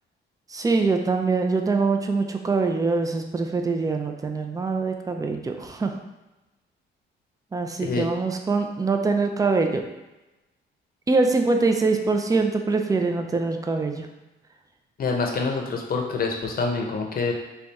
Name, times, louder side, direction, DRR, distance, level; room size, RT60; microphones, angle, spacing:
voice 1, 0.5-5.9 7.5-9.8 11.1-14.1, right 3 dB, 20° right, 4 dB, 0.4 m, -23 dB
voice 2, 7.8-8.1 15.0-17.3, left 4 dB, 45° left, 1 dB, 0.7 m, -26 dB
3.3 x 2.4 x 4.0 m, 1.0 s
cardioid pair, 90°, 20 cm